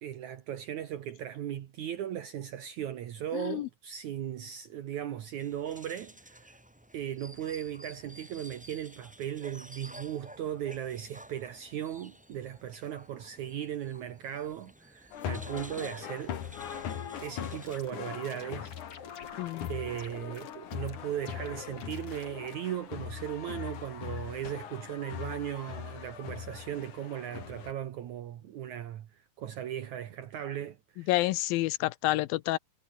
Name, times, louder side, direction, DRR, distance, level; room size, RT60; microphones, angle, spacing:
voice 1, 0.0-6.6 6.9-16.4 17.2-18.7 19.7-31.3, right 10 dB, 65° right, 2.5 m, -37 dB
voice 2, 3.3-3.7 19.4-19.7 31.1-32.6, left 18 dB, 90° left, 2.6 m, -29 dB
sound 1, 5.4-17.8, equal, 5° right, 1.4 m, -52 dB
sound 2, 15.1-27.7, left 9 dB, 65° left, 3.4 m, -41 dB
sound 3, 16.9-19.7 20.0-21.0 21.3-22.6, left 6 dB, 45° left, 3.7 m, -48 dB
omnidirectional pair, 4.0 m